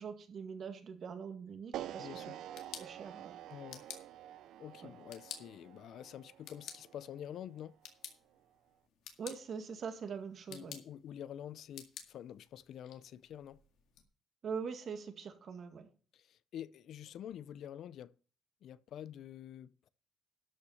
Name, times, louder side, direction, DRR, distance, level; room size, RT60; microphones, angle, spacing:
voice 1, 0.0-2.2 2.8-3.4 4.8-4.9 9.2-10.8 14.4-15.9, right 6 dB, 60° right, 1.9 m, -43 dB
sound 1, 1.7-7.9, right 12 dB, 85° right, 0.5 m, -48 dB
voice 2, 2.0-2.4 3.5-3.9 4.6-7.8 10.5-13.6 16.1-18.1 18.6-19.9, left 10 dB, 75° left, 0.5 m, -47 dB
sound 2, 2.3-14.0, left 9 dB, 90° left, 1.9 m, -54 dB
12.5 x 5.9 x 5.6 m
cardioid pair, 90°, 0 cm